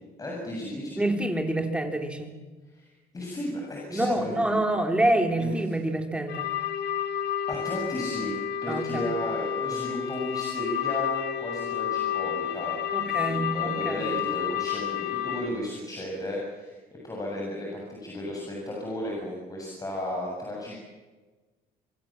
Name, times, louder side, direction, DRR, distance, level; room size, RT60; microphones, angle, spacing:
voice 1, 0.2-1.0 2.7-4.6 5.4-5.6 7.5-12.8 13.1-16.8 17.0-20.8, left 1 dB, 20° left, -3 dB, 7.3 m, -34 dB
voice 2, 1.0-2.3 3.9-6.5 8.7-9.0 12.9-14.1, right 1 dB, 5° right, 5 dB, 3.4 m, -27 dB
sound 1, 6.3-15.5, left 10 dB, 75° left, 2.8 m, -30 dB
26.0 x 22.0 x 7.5 m, 1.3 s
cardioid pair, 110°, 17 cm